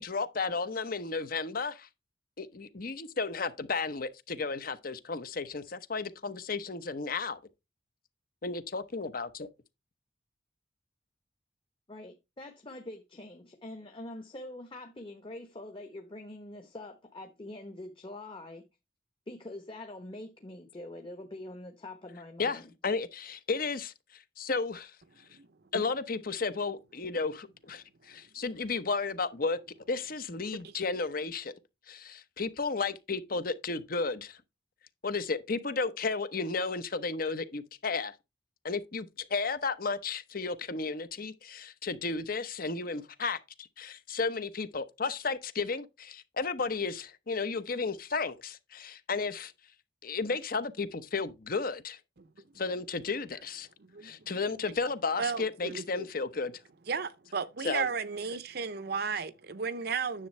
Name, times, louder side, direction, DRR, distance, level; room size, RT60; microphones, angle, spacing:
voice 1, 0.0-1.9 2.4-7.4 8.4-9.5 22.4-23.9 24.4-24.9 25.7-29.6 29.9-31.5 31.9-34.4 35.0-38.1 38.6-43.4 43.8-49.5 50.0-52.0 52.6-53.7 54.0-56.5 57.6-57.9, left 4 dB, 55° left, 1.0 m, -33 dB
voice 2, 11.9-18.6 19.3-22.7, left 1 dB, 30° left, 1.1 m, -44 dB
voice 3, 55.2-56.1 56.9-60.3, right 5 dB, 60° right, 0.7 m, -34 dB
10.0 x 7.3 x 3.3 m
head